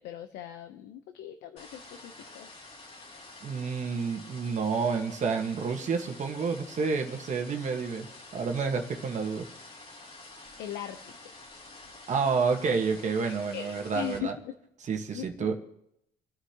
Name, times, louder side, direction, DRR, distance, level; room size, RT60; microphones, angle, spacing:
voice 1, 0.0-2.5 10.6-11.2 13.5-14.5 15.1-15.5, left 11 dB, 90° left, 7 dB, 0.9 m, -39 dB
sound 1, 1.6-14.2, left 2 dB, 40° left, 3.3 m, -48 dB
voice 2, 3.4-8.1 8.3-9.5 12.1-14.3 14.9-15.6, right 5 dB, 45° right, 4 dB, 1.6 m, -29 dB
29.0 x 9.8 x 3.0 m, 0.78 s
cardioid pair, 110°, 17 cm